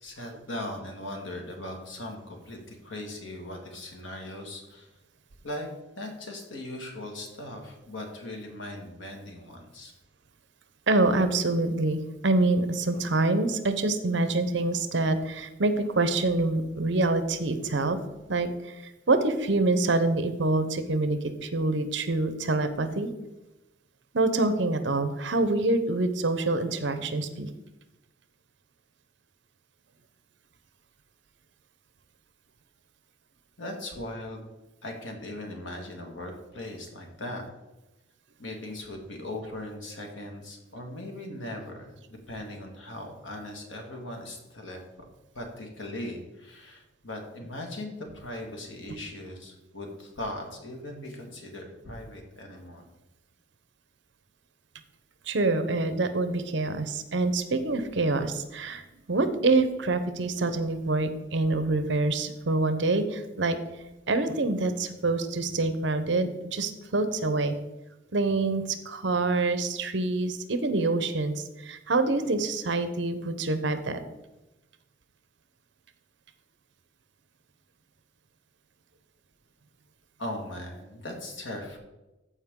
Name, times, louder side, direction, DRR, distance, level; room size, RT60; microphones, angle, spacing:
voice 1, 0.0-4.9 5.4-5.7 6.0-9.9 33.6-34.5 34.8-37.4 38.4-42.0 42.3-45.1 45.3-52.8 80.2-81.8, left 1 dB, 75° left, 2 dB, 1.9 m, -39 dB
voice 2, 10.9-18.0 18.3-18.7 19.1-23.1 24.1-27.5 55.3-63.6 64.1-67.5 68.1-74.0, right 2 dB, 60° right, 10 dB, 0.8 m, -26 dB
14.0 x 4.8 x 3.7 m, 1.0 s
head